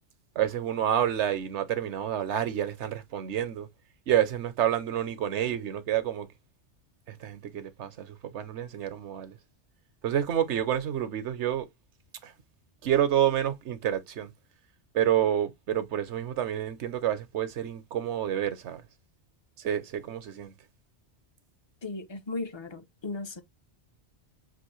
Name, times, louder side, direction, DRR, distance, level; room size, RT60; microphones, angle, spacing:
voice 1, 0.3-3.7 4.1-6.3 7.1-9.4 10.0-11.7 12.2-12.3 12.8-14.3 14.9-18.8 19.6-20.5, right 10 dB, 80° right, 1.1 m, -28 dB
voice 2, 21.8-23.4, left 3 dB, 35° left, 0.5 m, -36 dB
6.1 x 2.5 x 3.0 m
omnidirectional pair, 1.2 m